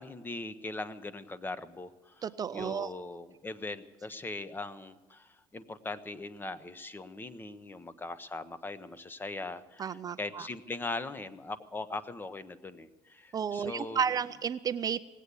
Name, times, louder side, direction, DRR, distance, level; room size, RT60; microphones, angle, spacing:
voice 1, 0.0-2.3 2.5-14.0, left 3 dB, 15° left, 14 dB, 0.7 m, -40 dB
voice 2, 2.2-2.9 9.8-10.5 13.3-15.2, right 7 dB, 35° right, 13 dB, 0.4 m, -32 dB
18.5 x 8.2 x 8.2 m, 1.2 s
supercardioid pair, 105°, 12 cm